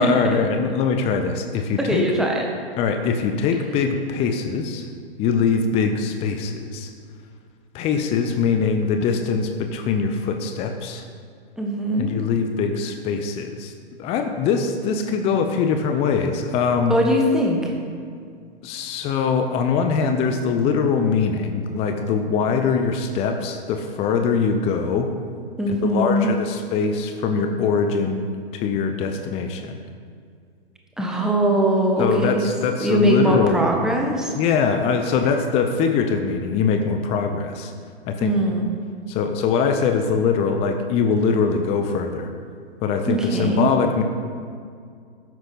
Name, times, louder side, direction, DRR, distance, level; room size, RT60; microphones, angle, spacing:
voice 1, 0.0-2.1 2.8-4.9 5.2-6.9 7.7-11.0 12.0-13.7 14.0-17.0 18.6-25.1 25.7-29.8 32.0-33.9 34.3-37.7 38.1-38.3 39.1-42.3 42.8-44.0, left 5 dB, 20° left, 6 dB, 0.7 m, -22 dB
voice 2, 1.8-2.4 11.6-12.1 16.9-17.7 25.6-26.3 31.0-32.5 32.8-34.3 38.2-38.7 43.1-43.7, right 1 dB, ahead, 0 dB, 1.5 m, -21 dB
13.0 x 10.5 x 4.1 m, 2.2 s
figure-of-eight pair, 110°, 31 cm